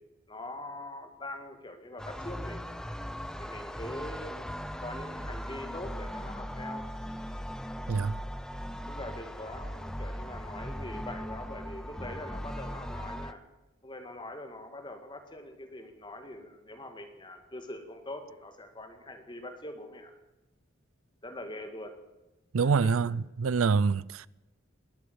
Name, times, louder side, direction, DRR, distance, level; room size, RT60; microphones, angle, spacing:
voice 1, 0.3-2.7 3.4-6.9 8.9-13.4 13.8-20.1 21.2-21.9 22.6-22.9, left 1 dB, 20° left, 1.9 m, -43 dB
sound 1, 2.0-13.3, equal, 5° left, 0.5 m, -39 dB
voice 2, 7.9-8.2 22.5-24.3, right 5 dB, 85° right, 0.5 m, -26 dB
20.5 x 8.5 x 8.0 m
head